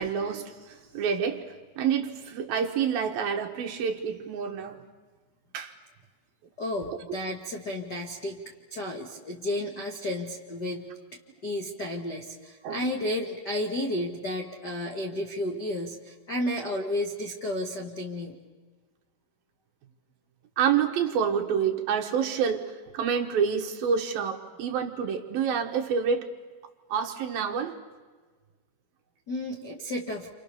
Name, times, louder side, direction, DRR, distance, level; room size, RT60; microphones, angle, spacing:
voice 1, 0.0-4.8 5.5-5.7 6.9-7.0 12.6-12.9 20.6-26.3 26.9-27.8, right 7 dB, 65° right, 3 dB, 3.0 m, -28 dB
voice 2, 6.6-8.4 8.7-10.9 11.4-18.4 29.3-30.3, left 1 dB, 50° left, 2 dB, 1.2 m, -32 dB
30.0 x 26.0 x 6.9 m, 1.4 s
omnidirectional pair, 5.0 m